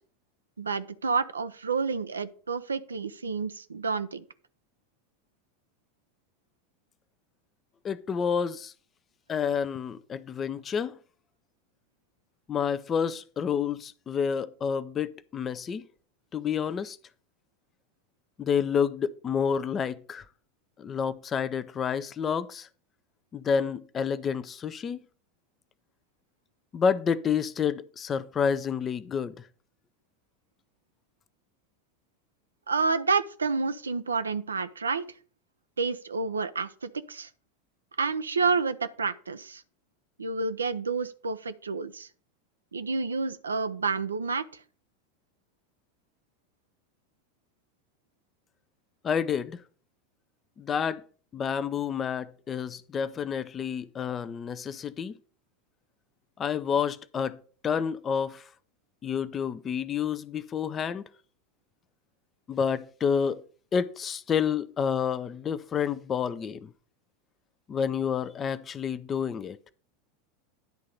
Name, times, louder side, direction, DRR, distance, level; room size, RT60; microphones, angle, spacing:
voice 1, 0.6-4.2 32.7-35.1 35.8-37.3 38.0-39.6 40.2-42.1 42.7-44.6, right 4 dB, 85° right, 0.5 m, -29 dB
voice 2, 7.8-8.7 9.3-11.0 12.5-15.8 16.3-17.0 18.4-20.2 20.8-22.7 23.3-25.0 26.7-29.3 49.0-49.6 50.6-51.0 51.3-55.2 56.4-58.4 59.0-61.1 62.5-63.4 63.7-66.7 67.7-69.6, left 7 dB, 30° left, 0.6 m, -29 dB
10.5 x 3.8 x 6.5 m
figure-of-eight pair, 85°, 0 cm